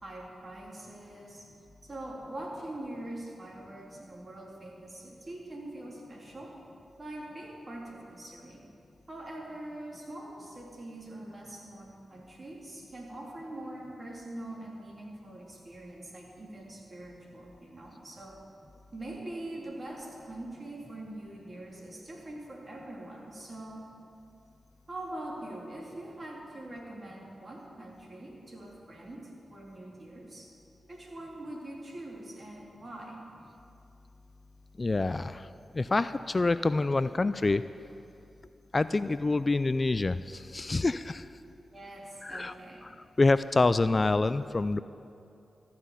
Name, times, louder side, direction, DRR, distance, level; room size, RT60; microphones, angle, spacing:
voice 1, 0.0-1.5 1.8-6.6 7.0-8.6 9.1-18.4 18.9-23.9 24.9-30.5 30.9-33.2 41.7-42.9, right 1 dB, 40° right, -2 dB, 3.1 m, -43 dB
voice 2, 34.8-35.5 35.7-37.6 38.7-41.3 42.2-42.5 43.2-44.8, left 3 dB, 35° left, 14 dB, 0.3 m, -26 dB
14.0 x 5.9 x 9.7 m, 2.7 s
cardioid pair, 50°, 0 cm